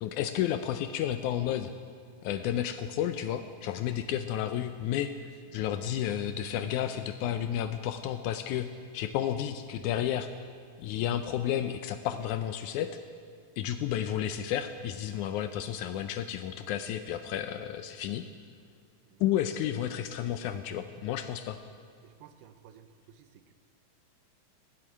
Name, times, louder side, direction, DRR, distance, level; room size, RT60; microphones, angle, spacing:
voice 1, 0.0-1.7 2.2-5.1 5.5-8.7 8.9-10.5 10.8-12.9 13.6-18.3 19.2-21.6, left 10 dB, 85° left, 9 dB, 1.7 m, -31 dB
voice 2, 5.2-5.6 19.0-19.5 22.0-23.5, right 9 dB, 75° right, 10 dB, 2.2 m, -56 dB
17.0 x 7.8 x 9.7 m, 2.1 s
omnidirectional pair, 4.0 m